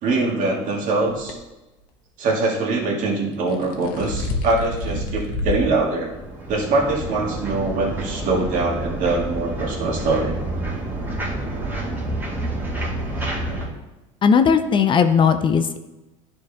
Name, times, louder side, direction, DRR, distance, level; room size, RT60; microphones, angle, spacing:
voice 1, 0.0-1.4 2.2-6.1 6.5-10.4 13.2-13.3, right 3 dB, 55° right, -1 dB, 2.0 m, -23 dB
sound 1, 1.1-1.3 3.3-5.7 6.1-6.2 7.0-7.1, left 1 dB, 70° left, 1.2 m, -28 dB
sound 2, 5.6-13.7, right 1 dB, 10° right, 2.0 m, -29 dB
voice 2, 14.2-15.8, left 6 dB, 30° left, 9 dB, 0.5 m, -17 dB
11.0 x 4.5 x 3.5 m, 1.0 s
supercardioid pair, 105°, 16 cm